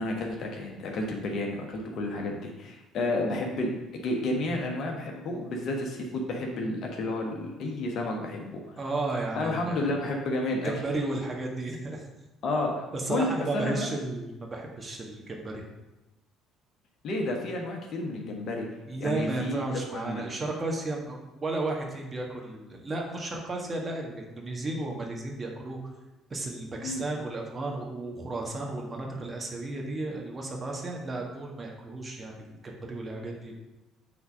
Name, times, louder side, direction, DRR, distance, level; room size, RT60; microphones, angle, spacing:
voice 1, 0.0-8.6 9.3-10.7 12.4-13.9 17.0-18.6 19.0-20.2 26.8-27.0, left 2 dB, 55° left, 1 dB, 1.3 m, -31 dB
voice 2, 8.8-9.9 10.6-12.0 12.9-15.6 18.9-25.8 26.3-33.6, right 2 dB, 30° right, 0 dB, 1.6 m, -33 dB
6.0 x 4.0 x 6.2 m, 1.0 s
figure-of-eight pair, 55°, 0 cm